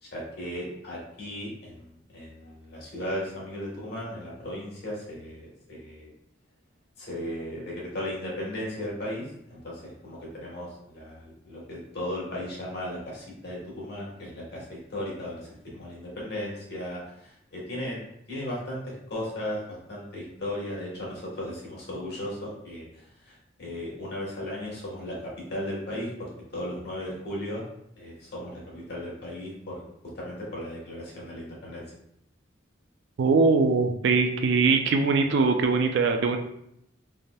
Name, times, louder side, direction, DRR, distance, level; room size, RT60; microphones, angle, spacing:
voice 1, 0.0-6.1 7.0-18.0 18.3-27.7 28.0-29.9 30.1-31.9, left 1 dB, 60° left, -4 dB, 1.2 m, -36 dB
voice 2, 33.2-36.4, right 4 dB, 65° right, 5 dB, 0.4 m, -22 dB
3.3 x 2.6 x 2.2 m, 0.75 s
head